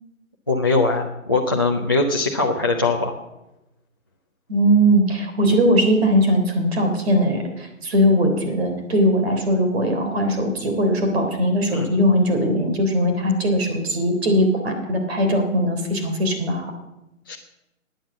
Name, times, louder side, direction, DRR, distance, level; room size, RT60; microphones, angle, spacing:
voice 1, 0.5-3.2 11.7-11.9 17.3-17.4, left 3 dB, 15° left, -3 dB, 0.5 m, -21 dB
voice 2, 4.5-16.7, equal, 45° right, 4 dB, 3.5 m, -20 dB
13.5 x 9.3 x 7.4 m, 0.93 s
hypercardioid pair, 155°, 41 cm